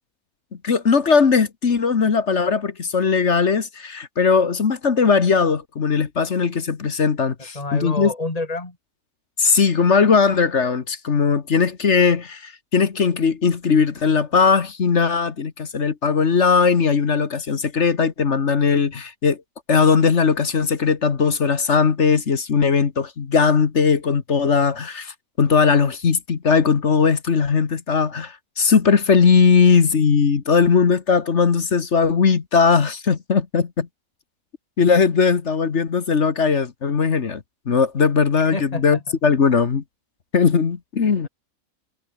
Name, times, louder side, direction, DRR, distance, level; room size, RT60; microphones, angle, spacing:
voice 1, 0.6-8.1 9.4-19.4 19.7-33.9 34.8-39.8 40.3-41.3, left 5 dB, 50° left, 1.7 m, -19 dB
voice 2, 7.4-8.8 38.5-39.0, left 2 dB, 25° left, 3.0 m, -28 dB
omnidirectional pair, 1.5 m